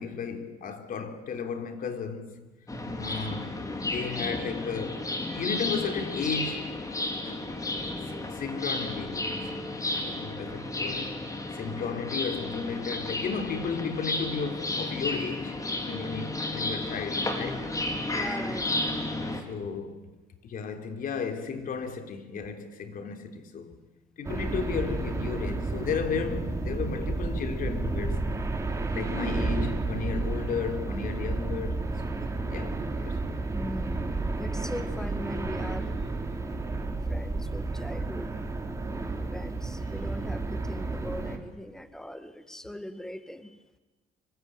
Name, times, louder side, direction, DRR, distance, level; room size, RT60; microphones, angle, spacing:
voice 1, 0.0-2.4 2.9-6.7 7.2-7.5 8.3-11.3 11.5-15.6 15.9-17.7 19.3-20.2 20.4-23.7 24.2-28.3 28.9-31.9 32.5-33.2, left 6 dB, 55° left, 3.5 m, -34 dB
sound 1, 2.7-19.4, left 2 dB, 20° left, 4.3 m, -33 dB
voice 2, 18.1-18.7 33.5-35.9 37.1-38.3 39.3-43.6, left 1 dB, 5° left, 1.9 m, -40 dB
sound 2, 24.2-41.4, right 3 dB, 20° right, 3.5 m, -31 dB
25.5 x 24.5 x 9.0 m
cardioid pair, 110°, 17 cm